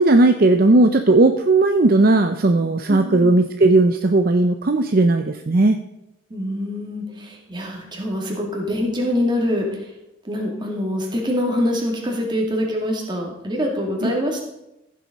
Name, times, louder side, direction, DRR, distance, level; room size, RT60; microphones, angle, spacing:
voice 1, 0.0-5.8 14.0-14.1, right 2 dB, 45° right, 7 dB, 0.6 m, -16 dB
voice 2, 2.9-3.3 6.3-9.8 10.2-14.4, left 1 dB, 20° right, -1 dB, 2.6 m, -24 dB
14.5 x 7.6 x 5.3 m, 0.89 s
head